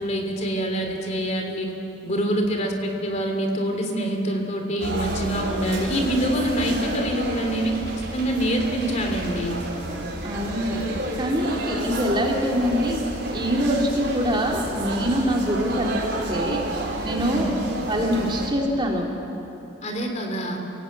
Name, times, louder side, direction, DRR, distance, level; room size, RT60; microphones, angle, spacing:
voice 1, 0.0-1.7 2.0-9.6 17.2-17.7 19.8-20.6, right 1 dB, 35° left, 3 dB, 3.0 m, -25 dB
sound 1, 4.8-18.5, right 1 dB, 60° right, 4.7 m, -31 dB
voice 2, 10.2-10.8 11.2-13.0 13.3-16.6 17.0-17.6 17.9-19.1, equal, 25° right, -1 dB, 2.9 m, -24 dB
29.0 x 18.0 x 8.6 m, 2.9 s
head